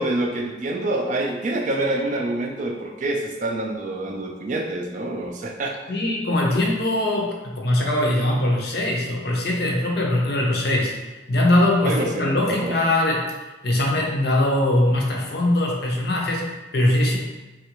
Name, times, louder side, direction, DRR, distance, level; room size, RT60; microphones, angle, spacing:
voice 1, 0.0-5.8 11.8-12.7, right 2 dB, 40° right, 1 dB, 0.3 m, -26 dB
voice 2, 5.9-11.0 11.3-17.2, left 1 dB, 55° left, -1 dB, 0.6 m, -21 dB
3.3 x 2.4 x 3.0 m, 1.1 s
head